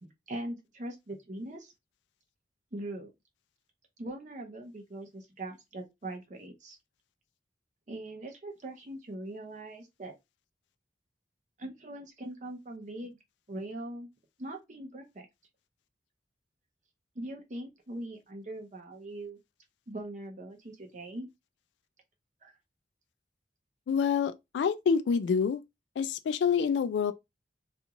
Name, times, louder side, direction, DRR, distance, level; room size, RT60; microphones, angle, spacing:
voice 1, 0.0-1.7 2.7-3.1 4.0-6.8 7.9-10.1 11.6-13.2 13.5-14.1 14.4-15.3 17.1-19.4 19.9-21.3 22.4-22.5, right 1 dB, 40° right, 0.7 m, -41 dB
voice 2, 23.9-25.6 26.0-27.1, left 6 dB, 75° left, 0.3 m, -27 dB
2.5 x 2.4 x 2.8 m
head